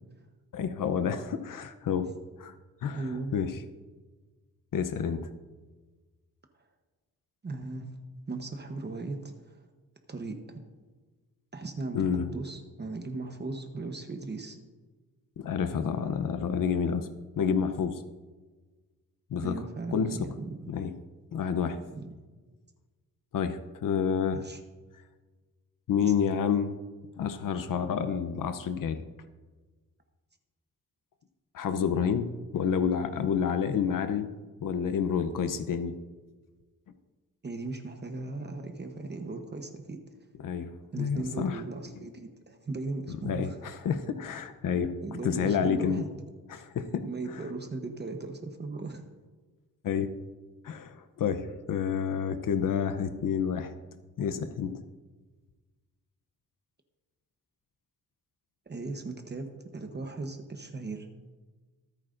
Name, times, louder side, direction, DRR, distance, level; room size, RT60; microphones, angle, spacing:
voice 1, 0.5-2.1 2.4-2.5 2.8-3.0 3.3-3.6 4.7-5.3 11.9-12.3 15.4-17.1 17.4-18.0 19.3-19.5 19.9-20.2 20.7-20.9 21.3-21.8 23.3-24.4 25.9-26.7 27.2-29.0 31.5-34.3 34.6-36.0 40.4-40.7 41.0-41.6 43.2-44.9 45.2-46.0 46.5-47.0 49.8-50.1 50.6-53.7 54.2-54.8, left 7 dB, 70° left, 10 dB, 0.7 m, -29 dB
voice 2, 2.9-3.4 6.6-6.7 7.4-8.0 8.3-9.6 10.1-10.6 11.5-14.6 19.4-20.7 21.9-22.1 24.3-24.6 26.0-26.1 37.4-40.2 40.9-43.6 45.0-46.1 47.0-49.0 58.7-59.5 59.7-61.1, right 3 dB, 30° right, 4 dB, 1.0 m, -37 dB
24.0 x 8.9 x 2.6 m, 1.3 s
wide cardioid pair, 135°, 33 cm